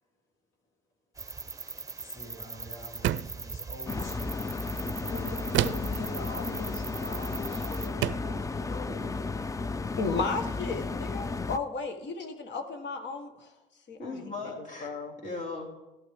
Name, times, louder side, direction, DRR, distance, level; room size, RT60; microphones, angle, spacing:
sound 1, 1.2-7.9, right 4 dB, 15° right, 0.8 m, -41 dB
voice 1, 2.0-4.8, equal, 85° left, -2 dB, 3.1 m, -47 dB
sound 2, 3.0-3.5 5.5-6.0 7.3-7.5 8.0-8.4, right 12 dB, 70° right, 0.4 m, -28 dB
sound 3, 3.9-11.6, left 3 dB, 15° left, 0.3 m, -34 dB
voice 2, 5.0-9.1 14.0-14.9 15.2-15.7, left 3 dB, 40° left, -2 dB, 3.4 m, -40 dB
voice 3, 10.0-13.5 13.9-15.1, left 4 dB, 65° left, 6 dB, 1.4 m, -34 dB
13.0 x 11.5 x 3.6 m, 1.0 s
cardioid pair, 90°, 20 cm